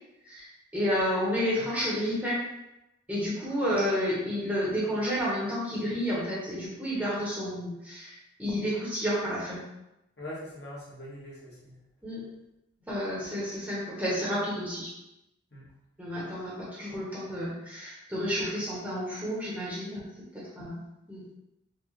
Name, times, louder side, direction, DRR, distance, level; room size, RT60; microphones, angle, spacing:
voice 1, 0.3-2.4 3.1-9.7 12.0-12.3 12.9-14.9 16.0-20.8 21.1-21.2, equal, 10° right, -8 dB, 0.9 m, -31 dB
voice 2, 10.2-11.7 15.5-15.6, left 1 dB, 55° left, -8 dB, 1.4 m, -42 dB
4.6 x 2.5 x 3.1 m, 0.91 s
head